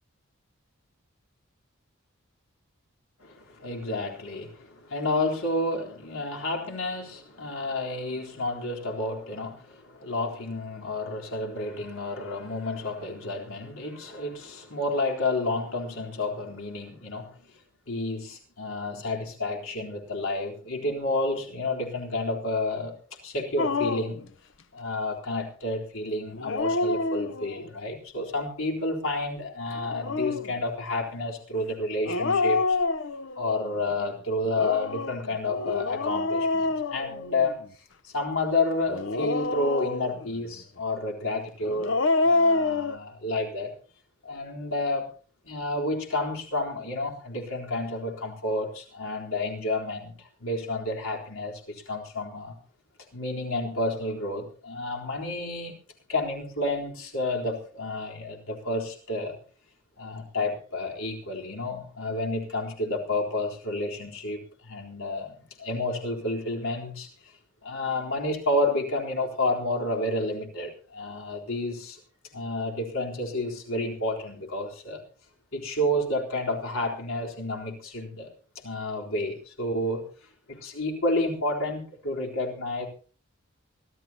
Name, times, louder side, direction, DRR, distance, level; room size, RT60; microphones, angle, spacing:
voice 1, 3.2-17.5 17.9-22.9 23.2-24.2 24.7-32.8 33.4-37.6 38.0-43.7 44.2-45.1 45.4-52.6 53.1-55.7 56.1-59.4 60.0-67.3 67.6-72.0 72.3-75.0 75.5-78.3 78.6-80.0 80.5-82.9, left 2 dB, 75° left, 0 dB, 3.9 m, -30 dB
Dog, 23.6-24.2 26.3-27.7 29.8-30.5 32.0-33.5 34.4-37.6 38.9-40.3 41.6-43.0, left 3 dB, 60° left, 0.8 m, -27 dB
25.0 x 13.0 x 2.9 m, 0.40 s
head